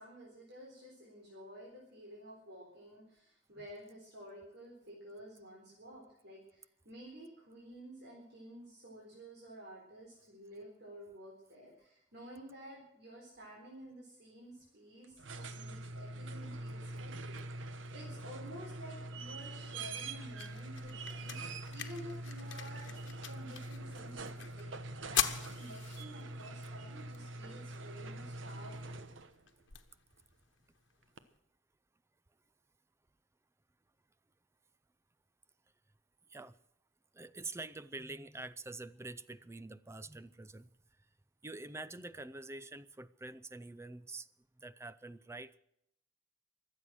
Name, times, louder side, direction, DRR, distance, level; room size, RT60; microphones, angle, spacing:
voice 1, 0.0-21.4 21.7-22.9 23.2-29.1, right 1 dB, 60° right, -2 dB, 4.1 m, -52 dB
sound 1, 15.0-29.4 31.2-31.3, right 2 dB, 80° right, 1.1 m, -44 dB
sound 2, 19.4-31.4, left 10 dB, 70° left, 1.2 m, -43 dB
voice 2, 37.1-40.7 41.4-44.3 44.6-45.6, right 2 dB, 15° right, 15 dB, 0.5 m, -46 dB
23.5 x 8.4 x 6.4 m, 0.76 s
head